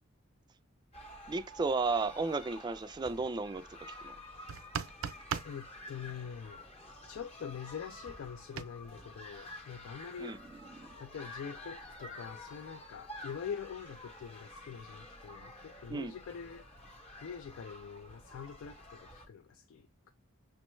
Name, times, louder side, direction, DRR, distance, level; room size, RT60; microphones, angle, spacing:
sound 1, 0.9-19.3, left 1 dB, 30° left, 0.8 m, -50 dB
voice 1, 1.3-3.7 4.0-4.1 10.2-10.4 10.8-10.9 15.9-16.1, right 3 dB, 20° right, 0.3 m, -33 dB
sound 2, 4.5-5.6 8.6-8.7, right 7 dB, 90° right, 0.4 m, -36 dB
voice 2, 4.8-5.1 5.4-6.6 7.1-10.6 11.0-16.7 17.2-20.1, left 7 dB, 65° left, 0.4 m, -44 dB
6.1 x 2.1 x 3.1 m
head